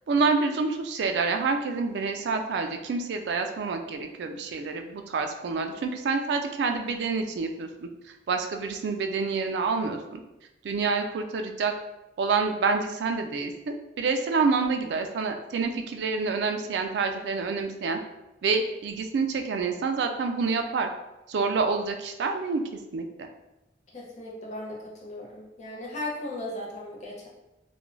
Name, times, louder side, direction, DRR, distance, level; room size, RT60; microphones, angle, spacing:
voice 1, 0.1-10.2 10.6-11.7 12.2-18.0 18.4-20.9 21.3-22.6 22.9-23.3, right 4 dB, 70° right, 5 dB, 0.3 m, -27 dB
voice 2, 23.9-27.3, left 1 dB, 40° left, -3 dB, 0.5 m, -37 dB
2.4 x 2.2 x 3.1 m, 0.96 s
head